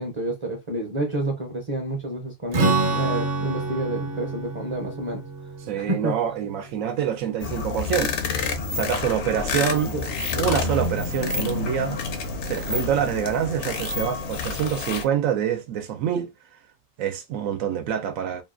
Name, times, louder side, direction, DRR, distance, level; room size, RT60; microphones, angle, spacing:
voice 1, 0.0-5.2 5.8-6.2 9.9-10.1, right 1 dB, 35° right, 0.5 m, -29 dB
Strum, 2.5-8.1, right 3 dB, 55° right, 0.9 m, -28 dB
voice 2, 5.7-8.2 8.7-9.9 10.4-12.0 12.5-16.3 17.0-18.4, right 9 dB, 90° right, 1.0 m, -26 dB
sound 1, 7.4-15.0, left 4 dB, 65° left, 0.8 m, -28 dB
2.8 x 2.3 x 2.4 m
omnidirectional pair, 1.3 m